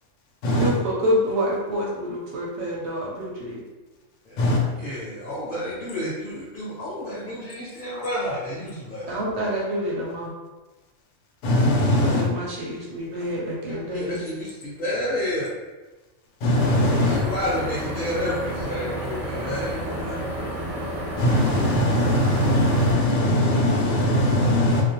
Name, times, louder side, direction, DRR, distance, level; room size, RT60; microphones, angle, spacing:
voice 1, 0.5-3.6 9.1-10.3 12.0-14.2, equal, 65° right, -3 dB, 0.7 m, -27 dB
voice 2, 4.8-9.2 13.7-15.5 17.0-20.2, left 1 dB, 45° left, -9 dB, 0.8 m, -30 dB
voice 3, 11.4-12.3 16.4-17.2 21.2-24.8, left 1 dB, 70° left, -2 dB, 0.9 m, -20 dB
sound 1, 16.5-22.9, right 1 dB, 15° left, 0.7 m, -31 dB
2.3 x 2.1 x 2.8 m, 1.2 s
omnidirectional pair, 1.4 m